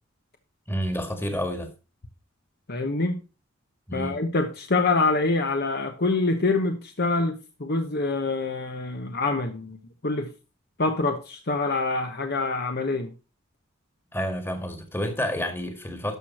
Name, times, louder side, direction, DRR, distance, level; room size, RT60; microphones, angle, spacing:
voice 1, 0.7-1.7 3.9-4.2 14.1-16.2, equal, 10° left, 1.8 m, -29 dB
voice 2, 2.7-3.2 3.9-9.8 10.0-10.3 10.8-13.1, left 3 dB, 50° left, 1.1 m, -25 dB
12.5 x 6.4 x 4.3 m
head